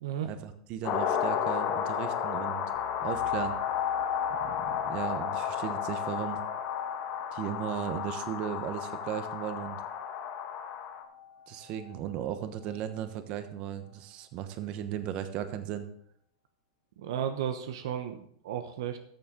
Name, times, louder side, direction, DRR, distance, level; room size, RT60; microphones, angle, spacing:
voice 1, 0.2-2.7 3.0-3.5 4.4-6.4 7.3-9.8 11.5-15.9, right 10 dB, 45° right, 10 dB, 1.1 m, -36 dB
sound 1, 0.8-11.0, left 8 dB, 45° left, 1.4 m, -33 dB
sound 2, 2.7-12.0 12.6-12.7, left 8 dB, 65° left, 0.9 m, -38 dB
voice 2, 17.0-19.0, right 9 dB, 70° right, 8 dB, 0.9 m, -34 dB
14.0 x 7.0 x 3.8 m, 0.67 s
hypercardioid pair, 125°, 2 cm